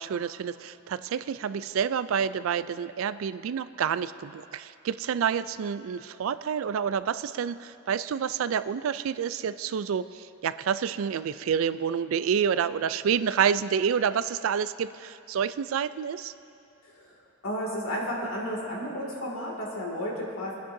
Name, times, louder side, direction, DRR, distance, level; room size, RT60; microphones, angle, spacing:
voice 1, 0.0-16.3, right 7 dB, 70° right, 15 dB, 0.3 m, -28 dB
voice 2, 16.8-20.5, equal, 75° left, -2 dB, 2.3 m, -33 dB
24.0 x 10.0 x 2.7 m, 2.7 s
head